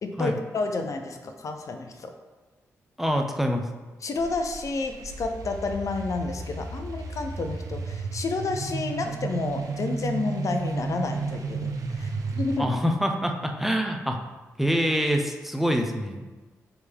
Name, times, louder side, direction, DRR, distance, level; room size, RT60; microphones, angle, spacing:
voice 1, 0.0-2.1 4.0-12.7, left 3 dB, 60° left, 5 dB, 0.6 m, -30 dB
voice 2, 3.0-3.6 12.6-14.2 14.6-16.3, equal, 5° right, 3 dB, 0.9 m, -25 dB
sound 1, 4.2-12.6, right 4 dB, 75° right, 0.8 m, -33 dB
8.0 x 3.6 x 3.6 m, 1.2 s
supercardioid pair, 55°, 6 cm